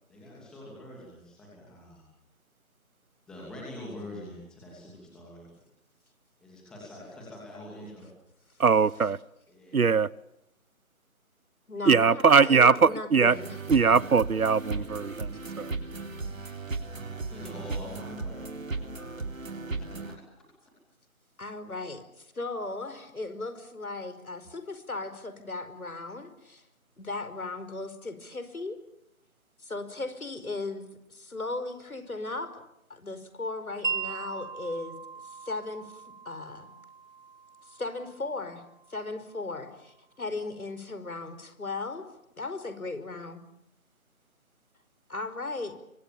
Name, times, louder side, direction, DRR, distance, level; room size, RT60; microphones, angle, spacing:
voice 1, 0.1-2.1 3.3-5.4 6.4-8.1 9.5-9.8 17.3-18.9 19.8-20.1, left 1 dB, ahead, 2.8 m, -45 dB
voice 2, 8.6-9.2 9.7-10.1 11.9-13.4 13.7-15.7, right 5 dB, 90° right, 1.1 m, -21 dB
voice 3, 11.7-13.6 17.3-17.6 21.4-26.6 27.0-28.8 29.6-32.6 32.9-35.0 35.2-36.7 37.6-38.6 38.9-42.1 42.4-43.4 45.1-45.8, left 3 dB, 90° left, 5.2 m, -37 dB
sound 1, 13.3-20.1, right 3 dB, 70° right, 3.7 m, -36 dB
Wind chime, 33.8-39.9, right 6 dB, 35° right, 2.3 m, -40 dB
28.5 x 24.5 x 7.1 m
figure-of-eight pair, 170°, 42 cm